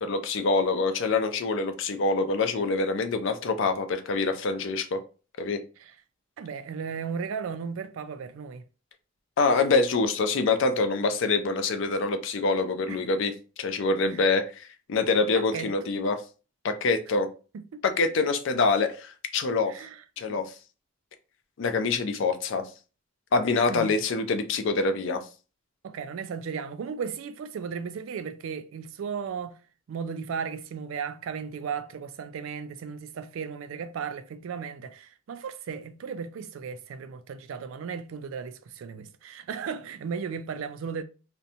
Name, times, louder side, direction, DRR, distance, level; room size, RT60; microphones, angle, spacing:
voice 1, 0.0-5.0 5.4-5.6 9.4-13.3 13.6-16.2 16.6-17.3 18.0-19.7 20.2-20.5 21.6-22.6 23.3-25.2, left 3 dB, 60° left, 0.4 m, -25 dB
voice 2, 6.4-8.6 12.9-13.0 14.1-14.2 15.3-15.7 17.5-17.8 19.7-20.0 20.3-20.4 23.7-23.9 25.8-29.6 29.9-41.0, right 6 dB, 65° right, 0.3 m, -35 dB
2.6 x 2.1 x 2.7 m
head